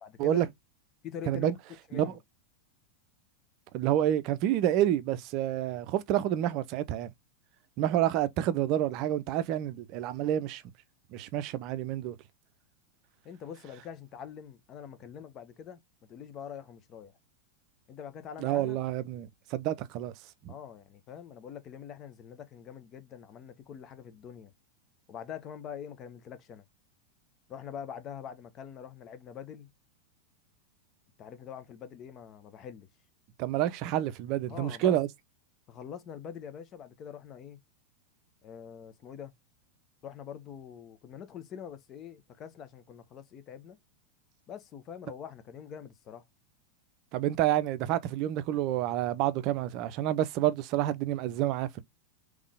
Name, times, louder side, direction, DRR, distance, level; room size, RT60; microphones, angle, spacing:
voice 1, 0.0-0.5 1.0-1.6 1.9-2.2 13.2-17.1 17.9-18.8 20.5-24.5 25.1-26.6 27.5-29.7 31.2-32.9 34.5-35.0 35.7-37.6 38.4-39.3 40.0-43.8 44.5-46.2, left 8 dB, 30° left, 0.8 m, -44 dB
voice 2, 3.7-7.1 7.8-10.6 11.1-12.2 18.4-20.1 20.4-20.5 33.4-35.1 47.1-51.8, right 12 dB, 40° right, 0.5 m, -28 dB
3.6 x 3.2 x 3.5 m
figure-of-eight pair, 90°, 0 cm